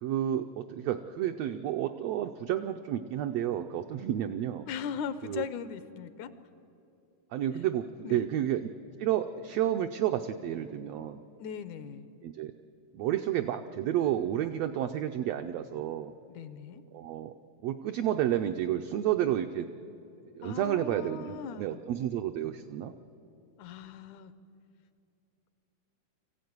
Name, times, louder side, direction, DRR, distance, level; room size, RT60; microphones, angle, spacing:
voice 1, 0.0-4.6 5.2-5.4 7.3-8.7 9.0-11.2 12.2-12.5 12.9-16.1 16.9-17.3 17.6-19.7 20.3-22.9, right 11 dB, 85° right, 7 dB, 1.4 m, -31 dB
voice 2, 4.7-6.3 8.0-8.2 11.4-12.1 16.3-16.8 20.4-21.8 23.6-24.3, left 7 dB, 75° left, 13 dB, 2.1 m, -39 dB
24.0 x 15.0 x 9.5 m, 2.8 s
omnidirectional pair, 3.7 m